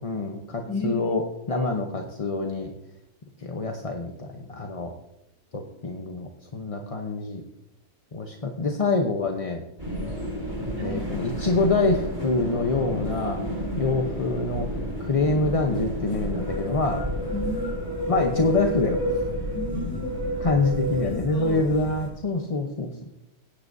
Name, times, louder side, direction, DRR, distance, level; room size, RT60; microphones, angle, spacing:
voice 1, 0.0-2.7 3.4-4.9 5.5-7.4 8.1-9.6 10.8-13.4 13.8-14.7 15.0-17.1 18.1-19.0 20.4-23.1, left 3 dB, 30° left, 2 dB, 0.7 m, -26 dB
voice 2, 0.7-1.1 1.5-1.7 10.8-11.1 17.3-17.7 19.5-20.6 21.0-21.6, equal, 15° left, 0 dB, 3.4 m, -33 dB
sound 1, 9.8-22.1, equal, 15° right, 3.6 m, -30 dB
17.0 x 9.9 x 2.7 m, 0.83 s
omnidirectional pair, 1.6 m